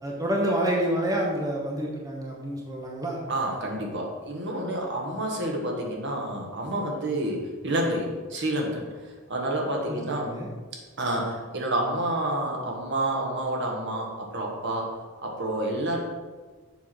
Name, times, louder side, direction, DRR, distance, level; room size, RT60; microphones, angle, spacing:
voice 1, 0.0-3.2 9.9-10.5, right 1 dB, 15° right, -2 dB, 1.1 m, -28 dB
voice 2, 3.3-8.9 9.3-10.3 11.0-14.9 15.2-16.0, right 1 dB, 55° right, 0 dB, 1.4 m, -29 dB
7.2 x 4.7 x 6.2 m, 1.4 s
head